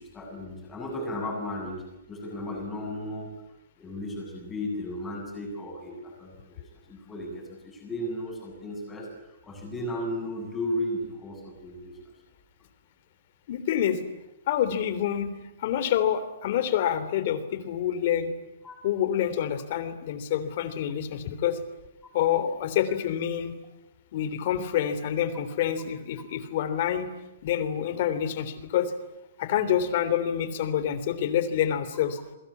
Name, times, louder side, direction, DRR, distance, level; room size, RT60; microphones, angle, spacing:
voice 1, 0.0-1.8 2.1-3.3 3.8-6.6 6.9-9.1 9.4-12.0 18.6-18.8, left 1 dB, 10° left, 0 dB, 7.9 m, -34 dB
voice 2, 13.5-14.0 14.5-15.3 15.6-18.3 18.8-21.6 22.1-23.5 24.1-27.1 27.4-28.9 29.4-32.2, left 10 dB, 40° left, 12 dB, 3.3 m, -27 dB
28.0 x 23.5 x 8.6 m, 0.96 s
hypercardioid pair, 175°, 0 cm